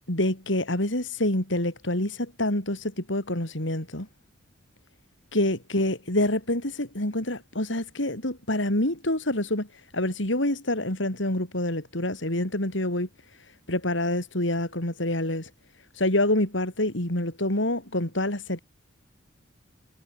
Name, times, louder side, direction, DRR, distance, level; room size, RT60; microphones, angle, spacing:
voice 1, 0.1-4.1 5.3-13.1 13.7-15.5 15.9-18.6, left 1 dB, 75° left, 5.8 m, -27 dB
head